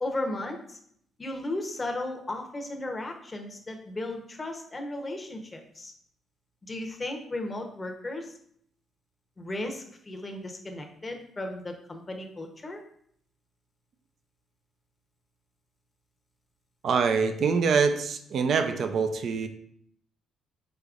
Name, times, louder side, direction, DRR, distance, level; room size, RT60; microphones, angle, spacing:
voice 1, 0.0-0.8 1.2-5.9 6.6-8.3 9.4-12.8, left 2 dB, 25° left, 3 dB, 0.8 m, -35 dB
voice 2, 16.8-19.5, right 5 dB, 60° right, 8 dB, 0.5 m, -25 dB
4.9 x 4.0 x 2.5 m, 0.67 s
cardioid pair, 90°, 0 cm